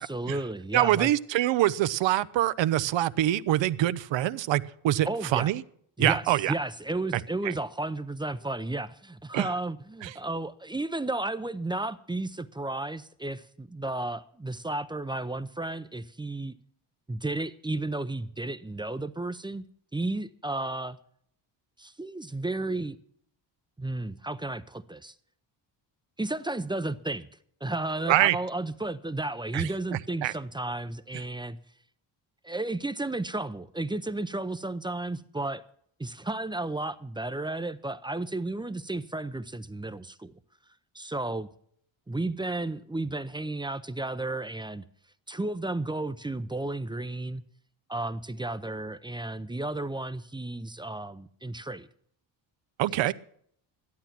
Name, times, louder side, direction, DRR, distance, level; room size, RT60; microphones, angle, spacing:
voice 1, 0.0-1.1 5.0-5.5 6.0-16.6 17.1-19.6 19.9-21.0 21.8-23.0 23.8-25.1 26.2-27.3 27.6-31.6 32.4-35.6 36.0-40.3 40.9-41.5 42.1-44.8 45.3-47.4 47.9-51.9, right 2 dB, 10° right, 0.5 m, -33 dB
voice 2, 0.7-5.6 6.0-6.5 7.4-7.5 9.3-9.5 10.0-10.1 28.1-28.4 29.5-29.7 30.2-30.3 52.8-53.1, right 14 dB, 70° right, 0.7 m, -25 dB
13.5 x 11.5 x 5.9 m
cardioid pair, 105°, 46 cm